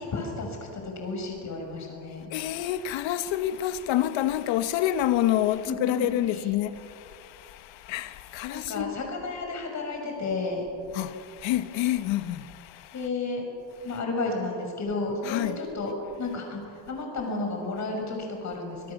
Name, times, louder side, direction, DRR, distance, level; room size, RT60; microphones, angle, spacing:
voice 1, 0.0-2.3 5.7-6.5 8.5-10.7 12.9-13.4 13.8-18.9, left 3 dB, 35° left, 6.4 m, -32 dB
voice 2, 2.3-9.0 10.9-13.0 15.3-15.6, left 13 dB, 65° left, 1.3 m, -28 dB
26.5 x 20.5 x 7.2 m
cardioid pair, 145°, 49 cm